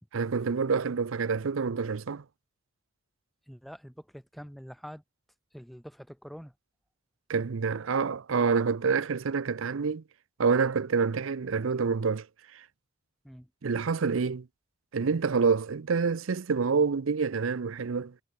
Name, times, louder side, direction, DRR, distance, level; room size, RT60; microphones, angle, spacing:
voice 1, 0.1-2.2 7.3-10.0 10.4-12.3 12.5-12.6 13.6-14.5 14.9-18.1, right 5 dB, 85° right, 0.6 m, -27 dB
voice 2, 3.5-5.0 5.5-6.5 13.2-13.5, equal, ahead, 0.8 m, -45 dB
head